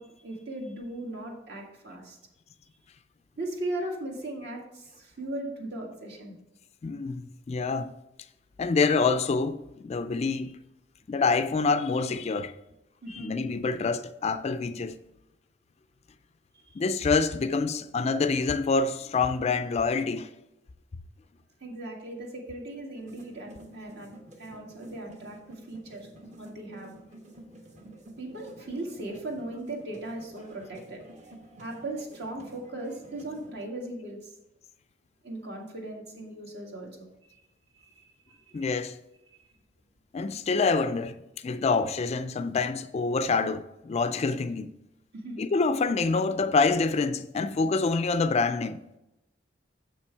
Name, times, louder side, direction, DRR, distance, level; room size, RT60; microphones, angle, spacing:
voice 1, 0.0-2.2 3.4-6.3 13.0-13.4 16.5-16.9 21.6-24.1 24.4-26.1 26.4-26.9 28.2-31.0 31.6-34.3 35.2-37.4 37.7-38.7 39.3-39.4 45.1-45.4, right 1 dB, 65° right, 1.9 m, -38 dB
voice 2, 6.8-7.9 8.6-10.6 11.1-12.5 13.1-15.0 16.8-20.3 38.5-39.0 40.1-41.2 41.4-44.7 45.4-48.8, left 4 dB, 35° left, 0.3 m, -26 dB
sound 1, 22.9-33.6, right 1 dB, 40° right, 1.1 m, -50 dB
7.1 x 6.0 x 4.5 m
head